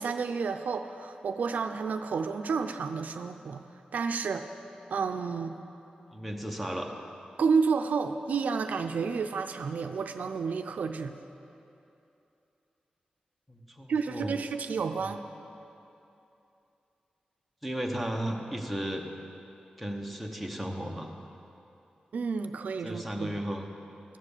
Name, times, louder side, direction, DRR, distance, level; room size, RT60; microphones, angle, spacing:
voice 1, 0.0-3.6 3.9-4.5 4.9-5.6 7.4-11.1 13.9-15.2 22.1-23.3, right 5 dB, 75° right, 7 dB, 0.4 m, -30 dB
voice 2, 6.1-7.0 13.5-14.3 17.6-19.1 19.8-21.1 22.8-23.7, equal, ahead, 2 dB, 0.8 m, -34 dB
13.0 x 7.5 x 6.7 m, 2.8 s
wide cardioid pair, 175°, 3 cm